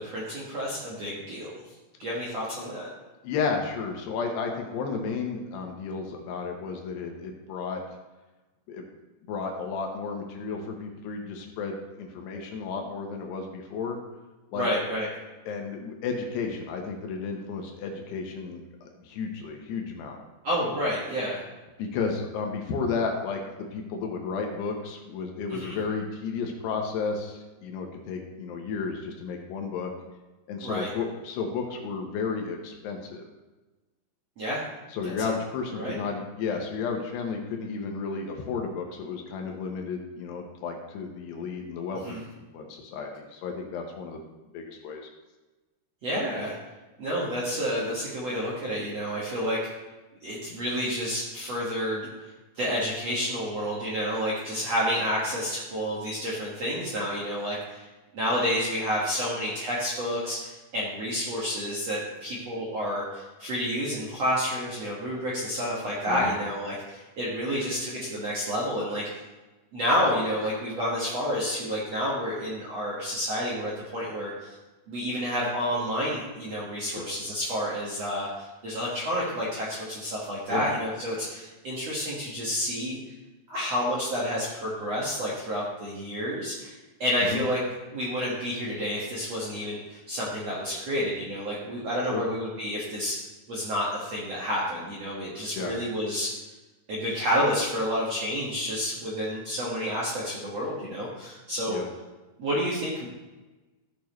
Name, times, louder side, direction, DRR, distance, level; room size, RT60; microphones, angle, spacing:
voice 1, 0.0-1.5 2.0-2.9 14.5-15.1 20.4-21.4 25.5-25.8 30.6-30.9 34.4-34.6 35.0-35.3 35.7-36.0 42.0-42.2 46.0-46.6 47.0-49.6 50.2-57.9 58.1-69.2 69.7-74.5 74.9-83.0 83.5-86.7 87.0-87.6 87.9-93.2 93.5-96.3 96.9-101.8 102.4-103.1, equal, 60° right, -7 dB, 1.8 m, -29 dB
voice 2, 3.2-7.8 8.7-8.8 9.3-14.0 14.5-14.7 15.5-20.2 21.8-29.9 30.5-33.3 34.9-42.2 42.5-44.2 44.5-45.0 66.1-66.3 76.9-77.0 80.5-80.7 87.2-87.4 92.1-92.2 95.6-95.7 101.7-101.9, left 5 dB, 75° left, 2 dB, 2.9 m, -32 dB
14.5 x 6.8 x 3.1 m, 1.2 s
omnidirectional pair, 5.2 m